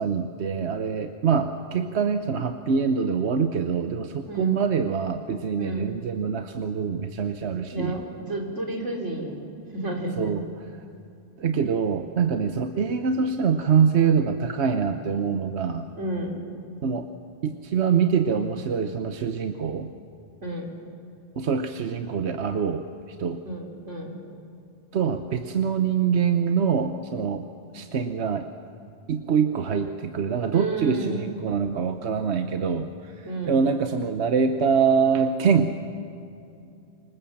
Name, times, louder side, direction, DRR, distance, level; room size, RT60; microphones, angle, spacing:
voice 1, 0.0-8.0 10.2-10.9 11.4-15.9 16.8-17.1 17.4-19.9 21.4-23.5 24.9-27.5 27.7-28.5 29.1-35.8, right 6 dB, 65° right, 7 dB, 1.2 m, -24 dB
voice 2, 4.2-4.6 5.6-5.9 7.7-9.4 9.7-10.3 16.0-16.4 20.4-20.7 23.5-24.2 30.5-31.3 33.2-33.6, right 1 dB, 85° right, 1 dB, 4.0 m, -31 dB
26.5 x 24.5 x 7.4 m, 2.6 s
omnidirectional pair, 1.2 m